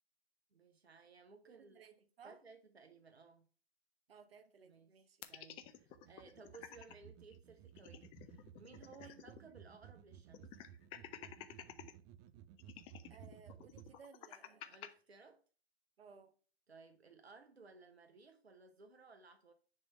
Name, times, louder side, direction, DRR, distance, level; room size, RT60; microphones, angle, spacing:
voice 1, 0.5-1.9 2.2-3.5 4.7-4.9 5.3-10.5 14.5-15.4 16.7-19.5, right 4 dB, 85° right, 1.1 m, -59 dB
voice 2, 1.4-2.4 4.1-5.2 9.0-9.1 13.1-14.8 16.0-16.3, right 6 dB, 70° right, 1.4 m, -60 dB
sound 1, 5.2-6.9 7.3-7.4 7.7-9.5 9.7-9.8 10.3-11.9 12.6-14.9, left 11 dB, 20° left, 0.4 m, -52 dB
sound 2, 5.6-13.9, right 10 dB, 25° right, 0.6 m, -58 dB
9.7 x 3.3 x 5.3 m
figure-of-eight pair, 115°, 31 cm